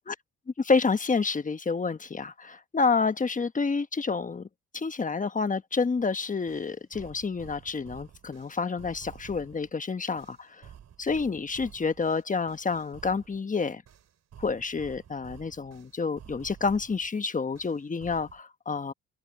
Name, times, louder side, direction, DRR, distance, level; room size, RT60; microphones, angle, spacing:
voice 1, 0.6-4.5 4.7-10.7 11.0-13.8 14.4-18.9, left 4 dB, 25° left, 1.2 m, -29 dB
sound 1, 6.0-6.1 6.5-9.7 10.2-13.4 13.9-17.1 17.5-18.4, right 9 dB, 60° right, 4.4 m, -51 dB
cardioid pair, 90°, 30 cm